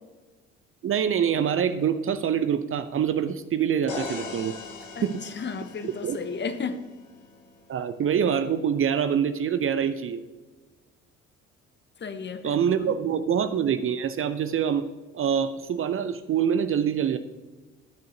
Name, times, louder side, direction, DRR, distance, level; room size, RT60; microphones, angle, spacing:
voice 1, 0.8-4.5 5.0-5.2 5.8-6.2 7.7-10.2 12.4-14.9 15.1-17.2, right 8 dB, 35° right, 11 dB, 0.7 m, -25 dB
sound 1, 3.9-7.7, left 4 dB, 80° left, 1.1 m, -40 dB
voice 2, 5.0-6.8 12.0-13.0, left 5 dB, 30° left, 10 dB, 0.9 m, -34 dB
19.0 x 6.4 x 2.8 m, 1.2 s
figure-of-eight pair, 50°, 37 cm